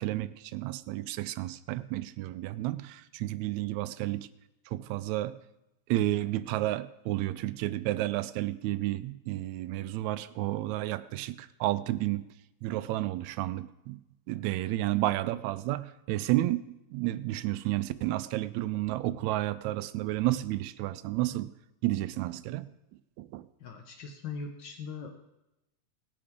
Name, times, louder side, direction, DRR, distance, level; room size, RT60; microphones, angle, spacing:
voice 1, 0.0-4.3 4.7-5.4 5.9-12.2 12.6-14.0 14.3-16.6 16.9-21.5 21.8-22.7 23.2-23.5, right 16 dB, 80° right, 14 dB, 1.8 m, -31 dB
voice 2, 23.6-25.1, left 4 dB, 90° left, 4 dB, 1.0 m, -40 dB
18.5 x 8.6 x 3.6 m, 0.91 s
omnidirectional pair, 3.3 m